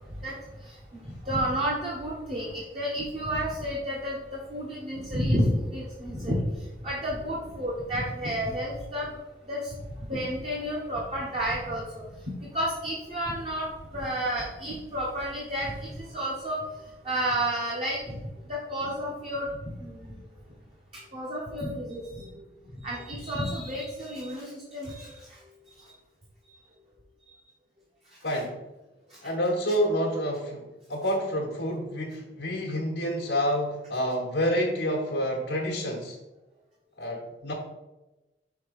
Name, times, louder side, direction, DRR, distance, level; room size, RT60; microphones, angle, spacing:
voice 1, 0.9-6.4 6.8-9.1 9.5-9.8 10.1-12.0 12.5-13.7 13.9-16.6 17.0-18.2 18.5-19.5 19.8-20.0 21.1-22.4 22.8-25.2, equal, 35° right, -4 dB, 1.1 m, -31 dB
voice 2, 28.2-28.6 29.2-36.2 37.0-37.5, equal, 90° left, -2 dB, 1.1 m, -28 dB
5.8 x 3.5 x 5.0 m, 1.0 s
head